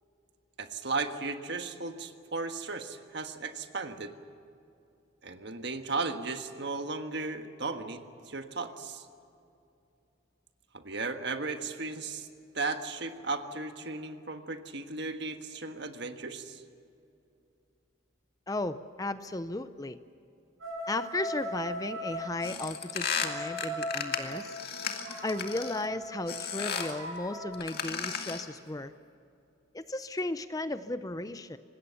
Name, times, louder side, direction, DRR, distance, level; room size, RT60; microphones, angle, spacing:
voice 1, 0.6-4.1 5.2-9.0 10.7-12.3 12.5-16.6, right 3 dB, 55° right, 6 dB, 1.5 m, -35 dB
voice 2, 18.5-20.0 20.9-24.5 25.2-28.9 29.7-31.6, left 2 dB, 20° left, 12 dB, 0.6 m, -35 dB
sound 1, 20.6-22.3 23.0-27.5, equal, 90° right, 7.7 m, -39 dB
sound 2, 22.4-25.9 26.3-27.0 27.5-28.5, left 6 dB, 50° left, 2.1 m, -35 dB
25.5 x 20.0 x 7.1 m, 2.6 s
head